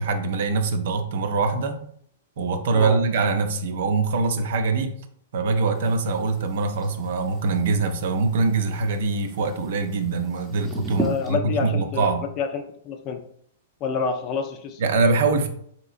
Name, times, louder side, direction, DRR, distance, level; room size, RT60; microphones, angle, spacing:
voice 1, 0.0-1.8 2.4-4.9 5.3-12.2 14.8-15.5, right 4 dB, 65° right, 7 dB, 0.5 m, -23 dB
voice 2, 2.7-3.0 11.0-13.2 13.8-14.8, left 5 dB, 40° left, 5 dB, 0.4 m, -28 dB
sound 1, 5.7-11.3, right 1 dB, ahead, 0.7 m, -37 dB
3.7 x 2.8 x 2.5 m, 0.65 s
hypercardioid pair, 120°, 0 cm